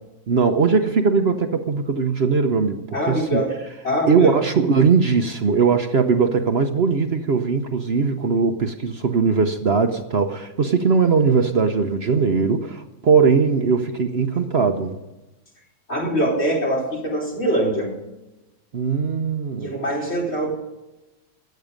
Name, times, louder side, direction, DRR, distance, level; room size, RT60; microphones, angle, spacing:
voice 1, 0.3-3.4 4.1-15.0 18.7-19.7, right 5 dB, 50° right, 6 dB, 1.1 m, -20 dB
voice 2, 2.9-3.5 3.8-4.3 15.9-17.9 19.6-20.5, right 1 dB, 50° left, -2 dB, 4.8 m, -23 dB
16.0 x 11.0 x 5.2 m, 1.0 s
omnidirectional pair, 1.5 m